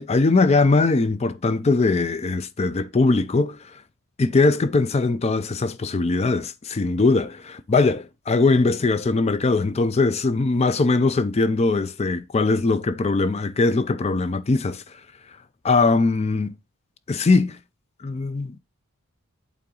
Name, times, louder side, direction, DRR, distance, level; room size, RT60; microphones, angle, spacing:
voice 1, 0.0-3.6 4.2-14.8 15.6-16.6 17.1-17.6 18.0-18.6, left 3 dB, 30° left, 0.4 m, -21 dB
8.5 x 3.8 x 3.8 m
head